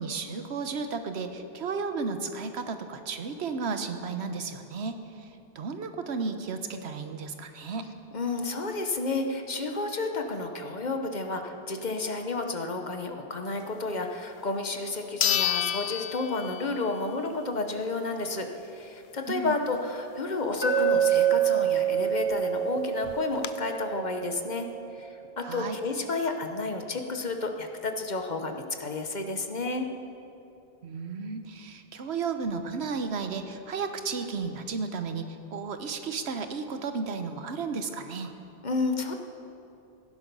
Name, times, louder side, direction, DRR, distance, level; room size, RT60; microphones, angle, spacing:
voice 1, 0.0-5.3 5.5-7.9 19.3-19.5 25.4-25.8 30.8-38.3, right 4 dB, 90° right, 8 dB, 1.2 m, -33 dB
voice 2, 8.1-29.9 38.6-39.1, left 3 dB, 45° left, 5 dB, 1.0 m, -31 dB
sound 1, 14.4-14.5 15.2-17.0 17.4-17.5 22.1-22.2 22.4-22.5 23.0-23.5, left 11 dB, 80° left, 0.8 m, -29 dB
Glass, 20.6-24.7, right 9 dB, 20° right, 2.5 m, -26 dB
16.5 x 11.0 x 5.4 m, 2.7 s
omnidirectional pair, 1.1 m